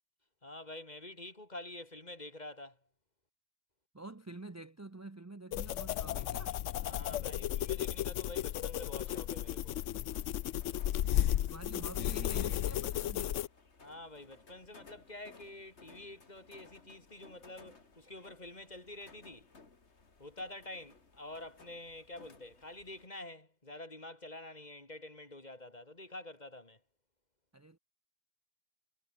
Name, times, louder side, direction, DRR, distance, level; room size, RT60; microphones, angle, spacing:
voice 1, 0.4-2.8 6.8-9.8 13.8-19.5 20.2-26.8, left 2 dB, 35° left, 3.7 m, -48 dB
voice 2, 3.9-6.6 11.5-13.4 27.5-27.8, right 2 dB, 15° right, 0.7 m, -48 dB
sound 1, 5.5-13.5, left 12 dB, 90° left, 1.0 m, -34 dB
sound 2, 8.8-23.1, left 4 dB, 65° left, 2.7 m, -60 dB
omnidirectional pair, 1.2 m